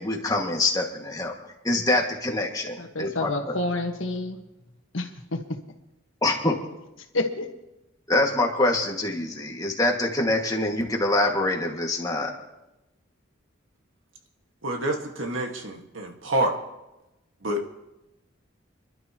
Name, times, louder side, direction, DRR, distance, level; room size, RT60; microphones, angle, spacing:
voice 1, 0.0-1.3 1.6-3.3 6.2-6.6 8.1-12.3, left 2 dB, 20° left, 0 dB, 2.0 m, -25 dB
voice 2, 2.8-4.4 4.9-5.6 7.1-7.5, left 2 dB, 85° left, 4 dB, 1.5 m, -29 dB
voice 3, 14.6-16.5 17.4-17.7, right 1 dB, 90° right, 3 dB, 1.8 m, -27 dB
29.0 x 12.0 x 3.0 m, 0.96 s
head